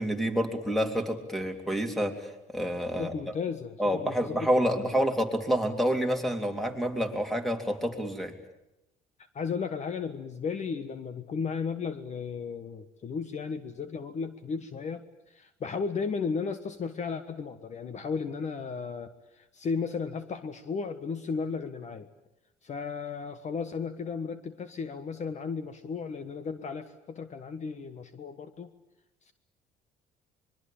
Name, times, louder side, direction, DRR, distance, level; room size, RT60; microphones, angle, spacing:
voice 1, 0.0-3.1 3.8-8.3, equal, ahead, 5 dB, 3.4 m, -28 dB
voice 2, 2.9-5.0 9.3-22.1 22.6-28.7 29.3-29.4, left 5 dB, 45° left, 10 dB, 1.5 m, -35 dB
25.5 x 22.5 x 8.8 m, 0.91 s
cardioid pair, 110°, 17 cm